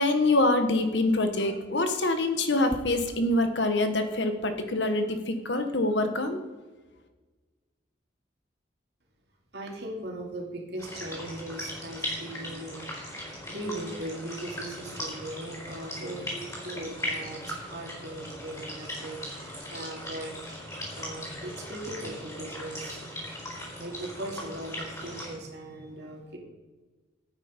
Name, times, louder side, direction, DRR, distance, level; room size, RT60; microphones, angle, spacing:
voice 1, 0.0-6.4, left 2 dB, 65° left, 7 dB, 1.3 m, -25 dB
voice 2, 9.5-12.9 13.5-20.4 20.9-23.1 23.8-26.4, right 1 dB, 60° right, 0 dB, 2.6 m, -39 dB
sound 1, 10.8-25.3, equal, 20° left, 4.4 m, -38 dB
12.5 x 9.0 x 5.2 m, 1.3 s
head